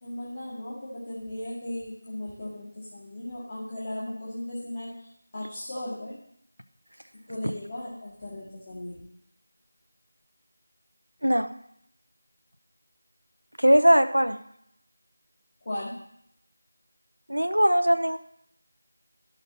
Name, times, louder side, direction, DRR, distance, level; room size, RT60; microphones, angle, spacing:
voice 1, 0.0-4.9 5.3-6.2 7.3-9.1 15.6-16.0, left 1 dB, 30° left, -8 dB, 1.9 m, -36 dB
voice 2, 13.6-14.4 17.3-18.2, equal, 85° right, 9 dB, 0.7 m, -20 dB
11.5 x 6.7 x 4.1 m, 0.74 s
figure-of-eight pair, 170°, 0 cm